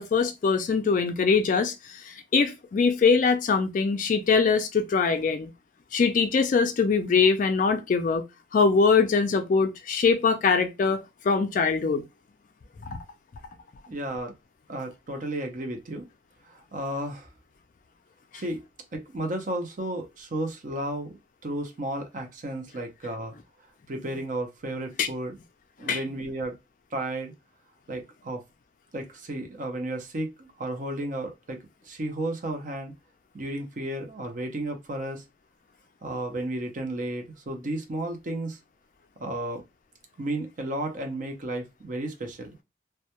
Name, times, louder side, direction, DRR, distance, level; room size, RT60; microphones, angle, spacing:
voice 1, 0.0-5.5 5.9-8.2 8.5-12.0 12.9-13.0 18.3-18.4 25.0-25.1 25.9-26.0, left 5 dB, 45° left, 0.3 m, -23 dB
voice 2, 13.9-14.3 14.7-16.0 16.5-17.3 18.3-18.6 18.9-23.3 23.9-25.4 25.8-26.6 26.9-27.3 27.9-28.4 28.9-31.6 31.8-32.9 33.3-35.2 36.0-38.6 39.2-39.6 40.2-42.5, right 1 dB, 45° right, 0.5 m, -33 dB
2.2 x 2.1 x 2.8 m
head